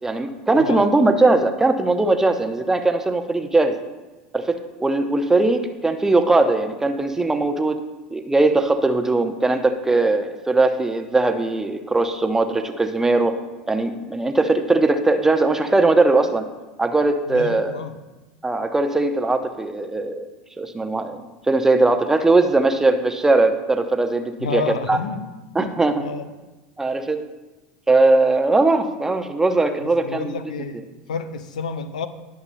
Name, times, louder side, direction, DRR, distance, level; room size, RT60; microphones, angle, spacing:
voice 1, 0.0-3.8 4.3-7.8 8.1-13.3 13.7-16.4 16.8-17.8 18.4-20.3 20.6-21.2 21.5-24.6 24.9-25.0 25.5-26.0 26.8-27.2 27.9-30.3, right 2 dB, 10° right, 7 dB, 0.8 m, -19 dB
voice 2, 0.6-0.9 17.3-18.0 24.4-25.3 25.6-25.7 26.0-26.3 29.8-30.8 31.1-32.1, left 5 dB, 75° left, 10 dB, 0.7 m, -30 dB
19.0 x 6.8 x 2.2 m, 1.2 s
figure-of-eight pair, 80°, 4 cm